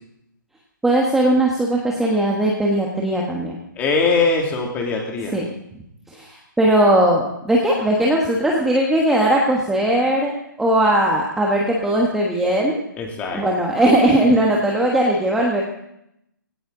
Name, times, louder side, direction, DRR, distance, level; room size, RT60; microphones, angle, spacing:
voice 1, 0.8-3.6 5.3-5.5 6.1-10.3 10.6-12.8 13.3-15.6, right 1 dB, 5° right, -2 dB, 1.3 m, -18 dB
voice 2, 3.8-5.4 13.0-13.4, left 4 dB, 15° left, 1 dB, 2.7 m, -21 dB
17.5 x 17.0 x 3.9 m, 0.79 s
hypercardioid pair, 160°, 11 cm